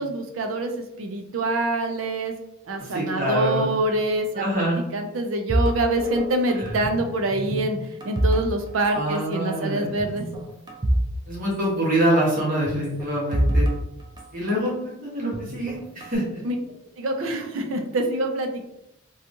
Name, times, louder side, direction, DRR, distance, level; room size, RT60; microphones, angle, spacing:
voice 1, 0.0-2.3 2.7-4.4 4.9-7.8 8.0-10.3 16.4-16.6 17.0-18.7, right 2 dB, 90° right, 5 dB, 0.5 m, -25 dB
voice 2, 2.9-3.7 4.3-4.8 8.9-10.4 11.3-13.7 14.3-16.4, right 1 dB, 45° right, -4 dB, 1.1 m, -25 dB
sound 1, 5.5-7.0 7.3-8.9 9.2-9.4 10.0-11.1 11.4-11.5 12.7-14.7 15.3-16.2, right 1 dB, 20° right, 0.4 m, -26 dB
2.8 x 2.3 x 2.6 m, 0.82 s
head